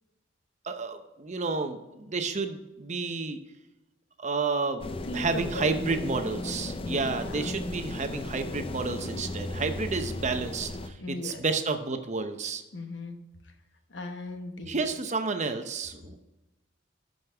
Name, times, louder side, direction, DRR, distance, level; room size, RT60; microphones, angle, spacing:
voice 1, 0.6-3.4 4.2-4.8 5.1-12.6 14.7-16.2, right 4 dB, 40° right, 8 dB, 0.8 m, -31 dB
sound 1, 4.8-10.9, left 2 dB, 30° left, 0.5 m, -36 dB
voice 2, 5.0-6.0 6.8-7.5 11.0-11.4 12.7-13.2 13.9-14.8, left 2 dB, 65° left, 5 dB, 1.1 m, -38 dB
11.5 x 5.2 x 3.5 m, 1.0 s
head